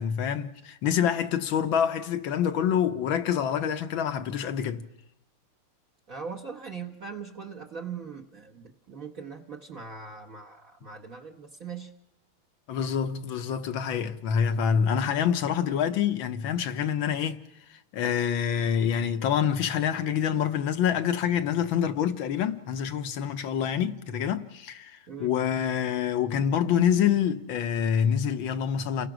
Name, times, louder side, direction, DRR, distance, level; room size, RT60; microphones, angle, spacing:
voice 1, 0.0-4.8 12.7-17.4 17.9-29.1, left 8 dB, 70° left, 1.8 m, -26 dB
voice 2, 6.1-11.9 25.1-25.3, right 6 dB, 45° right, 1.6 m, -40 dB
29.5 x 20.5 x 6.2 m
omnidirectional pair, 2.4 m